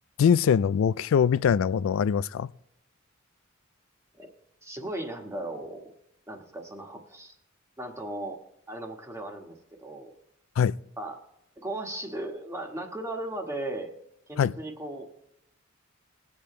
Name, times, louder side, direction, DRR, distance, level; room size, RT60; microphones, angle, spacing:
voice 1, 0.2-2.5 10.6-10.8 14.4-14.5, left 7 dB, 70° left, 0.3 m, -22 dB
voice 2, 4.6-5.8 6.3-7.3 7.8-8.4 8.7-10.1 11.0-11.2 11.6-13.9 14.3-15.0, right 1 dB, 15° right, 1.4 m, -36 dB
20.5 x 8.5 x 3.2 m
head